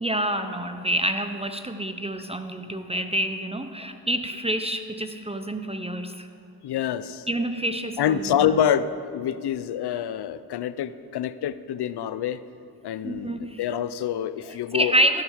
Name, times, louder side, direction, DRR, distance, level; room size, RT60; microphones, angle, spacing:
voice 1, 0.0-6.3 7.3-8.6 13.0-13.6 14.4-15.2, right 1 dB, 15° right, 8 dB, 0.7 m, -27 dB
voice 2, 6.6-7.3 8.0-12.4 12.8-14.9, left 9 dB, 85° left, 15 dB, 0.5 m, -26 dB
16.0 x 8.9 x 5.0 m, 2.5 s
cardioid pair, 60°, 39 cm